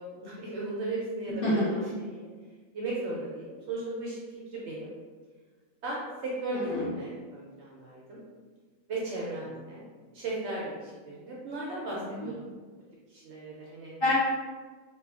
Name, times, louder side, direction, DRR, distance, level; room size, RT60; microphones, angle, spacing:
voice 1, 0.0-1.8 2.1-2.3 2.7-4.9 5.8-8.2 8.9-9.8 10.1-12.5 13.1-13.9, right 2 dB, 65° right, -5 dB, 0.7 m, -36 dB
voice 2, 1.4-1.9 6.7-6.9 12.0-12.3 14.0-14.1, left 1 dB, 45° left, -9 dB, 0.9 m, -28 dB
2.8 x 2.4 x 2.3 m, 1.4 s
omnidirectional pair, 1.5 m